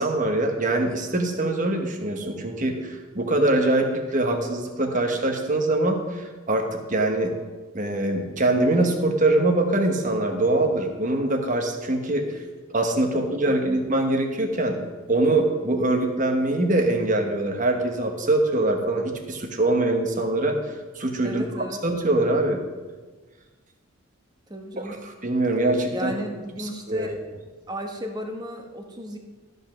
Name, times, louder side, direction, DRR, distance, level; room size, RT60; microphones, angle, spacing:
voice 1, 0.0-7.3 7.7-12.4 12.7-14.8 15.1-20.6 20.9-21.5 21.8-22.6 24.8-25.0 25.2-26.1 26.6-27.1, right 2 dB, 40° right, 4 dB, 1.2 m, -23 dB
voice 2, 21.2-21.8 24.5-25.0 25.9-27.2 27.7-29.2, equal, 20° right, 3 dB, 1.1 m, -34 dB
13.0 x 5.4 x 6.0 m, 1.3 s
head